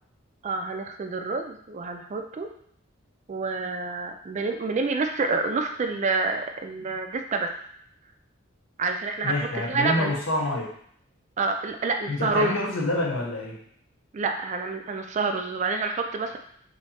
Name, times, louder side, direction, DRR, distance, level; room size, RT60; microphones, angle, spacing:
voice 1, 0.4-2.5 3.3-7.5 8.8-10.1 11.4-12.6 14.1-16.4, right 3 dB, 35° right, 5 dB, 0.3 m, -28 dB
voice 2, 9.2-10.7 12.1-13.6, left 1 dB, 70° left, -2 dB, 1.0 m, -27 dB
3.2 x 2.7 x 4.2 m, 0.65 s
head